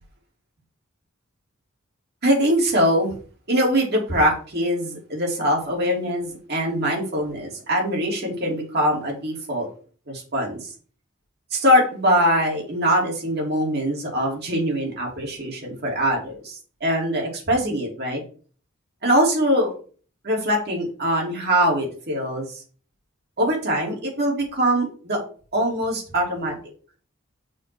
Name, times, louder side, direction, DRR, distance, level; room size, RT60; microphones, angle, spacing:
voice 1, 2.2-3.2 3.5-9.7 10.1-10.7 11.5-18.2 19.0-19.7 20.2-22.6 23.4-25.2 25.5-26.6, equal, 50° right, -1 dB, 2.8 m, -22 dB
6.3 x 3.7 x 6.1 m, 0.41 s
head